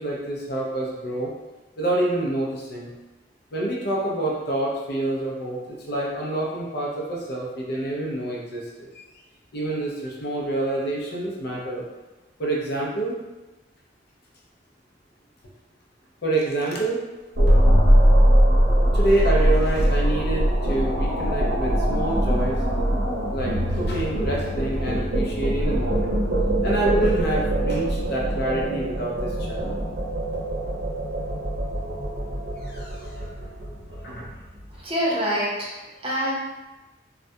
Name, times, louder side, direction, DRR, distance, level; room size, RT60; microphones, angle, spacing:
voice 1, 0.0-1.3 1.8-2.9 3.5-9.0 9.5-11.8 12.4-13.2 16.2-17.0 18.9-22.6 23.3-26.2 26.6-29.6 32.6-33.3 33.9-34.4, right 1 dB, 55° left, -3 dB, 0.5 m, -27 dB
sound 1, 17.4-34.6, equal, 75° right, 0.7 m, -22 dB
voice 2, 34.7-36.3, equal, 30° right, -5 dB, 0.6 m, -26 dB
2.3 x 2.1 x 2.6 m, 1.1 s
head